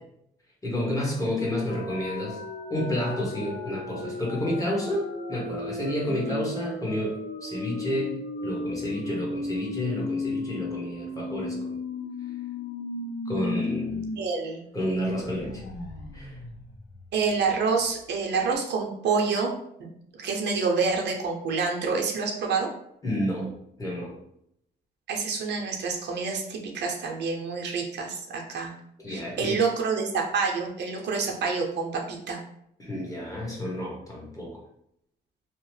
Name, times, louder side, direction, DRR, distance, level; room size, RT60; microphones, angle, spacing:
voice 1, 0.6-2.4 2.7-8.2 8.4-11.8 13.2-14.0 14.7-15.6 16.1-16.4 23.0-23.5 23.8-24.1 29.0-29.6 32.8-34.6, left 1 dB, 20° left, -3 dB, 1.1 m, -30 dB
sound 1, 1.7-14.2 14.5-14.6 15.0-17.7, left 3 dB, 80° left, 0.5 m, -35 dB
voice 2, 14.2-14.6 17.1-19.5 20.1-22.7 25.1-28.7 29.1-32.4, right 4 dB, 75° right, 1 dB, 0.6 m, -27 dB
2.8 x 2.0 x 3.1 m, 0.75 s
cardioid pair, 100°, 18 cm